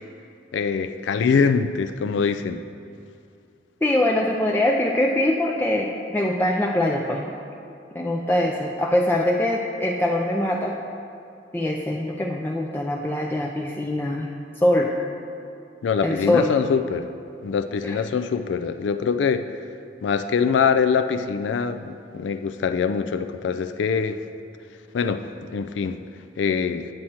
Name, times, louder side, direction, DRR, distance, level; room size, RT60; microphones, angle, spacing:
voice 1, 0.5-2.6 15.8-17.1 17.4-19.5 20.0-24.2 24.9-25.2 25.5-26.0 26.4-26.9, left 6 dB, 80° left, 9 dB, 0.4 m, -23 dB
voice 2, 3.8-7.3 7.9-10.8 11.5-14.3 14.6-15.0 16.0-16.5 17.8-18.0, left 1 dB, 10° left, -1 dB, 0.4 m, -23 dB
8.9 x 7.7 x 4.3 m, 2.5 s
head